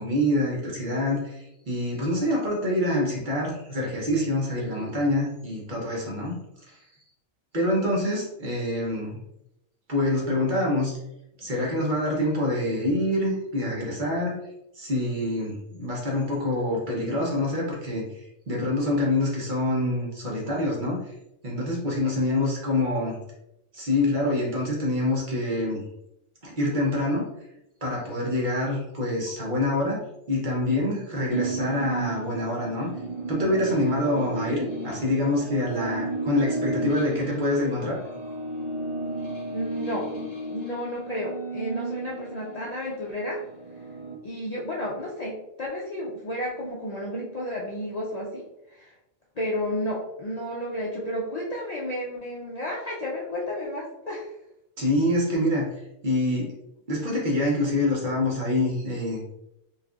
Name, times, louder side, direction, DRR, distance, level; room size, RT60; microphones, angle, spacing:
voice 1, 0.0-6.4 7.5-9.2 9.9-10.9 11.4-14.4 14.8-18.0 18.5-21.0 21.4-23.2 23.7-25.8 26.4-27.2 27.8-30.0 30.3-32.9 33.3-38.0 54.8-55.7 56.0-56.5 56.9-59.2, left 1 dB, 40° right, -4 dB, 0.8 m, -26 dB
sound 1, 31.3-42.7 43.1-44.2, right 2 dB, 55° left, 1.2 m, -33 dB
voice 2, 39.5-40.1 40.5-43.4 44.2-48.5 48.8-48.9 49.4-54.3, left 1 dB, 90° left, -5 dB, 0.3 m, -32 dB
4.0 x 2.5 x 2.3 m, 0.86 s
omnidirectional pair, 1.4 m